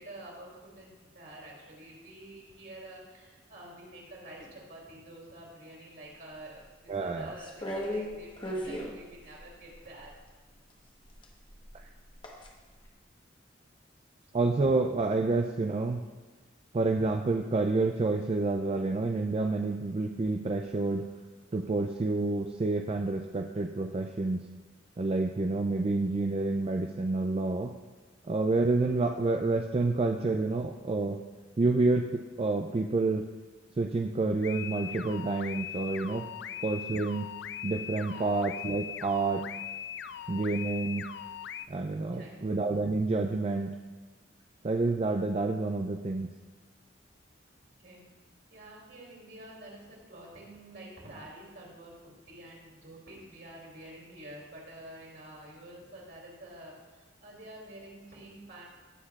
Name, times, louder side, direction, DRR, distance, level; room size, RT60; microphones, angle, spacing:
voice 1, 0.0-10.1 36.3-36.4 38.1-38.2 42.1-42.4 47.8-48.1 48.5-58.6, right 1 dB, 55° right, -3 dB, 2.8 m, -48 dB
voice 2, 6.9-7.4 11.7-11.8 14.3-16.1 16.7-21.0 21.5-24.4 25.0-27.8 28.2-31.2 31.6-33.3 33.8-36.3 36.6-37.3 37.6-39.4 40.3-41.1 41.7-43.8 44.6-46.3, right 3 dB, 30° right, 4 dB, 0.3 m, -29 dB
sound 1, 7.4-10.1 11.1-12.5 12.9-13.0, equal, 25° left, 1.1 m, -37 dB
sound 2, 34.4-41.7, left 9 dB, 60° left, 0.3 m, -40 dB
17.0 x 6.6 x 2.4 m, 1.3 s
head